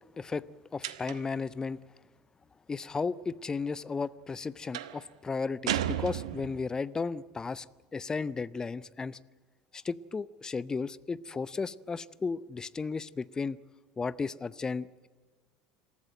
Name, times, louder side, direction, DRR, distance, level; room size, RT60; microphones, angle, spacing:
voice 1, 0.7-1.8 2.7-7.7 7.9-9.2 9.7-13.6 14.0-15.1, left 4 dB, 20° left, 18 dB, 0.7 m, -34 dB
sound 1, 0.8-1.4 4.7-5.0 5.7-6.7, right 11 dB, 70° right, 0.9 m, -33 dB
27.0 x 14.0 x 9.0 m, 1.5 s
figure-of-eight pair, 70°, 3 cm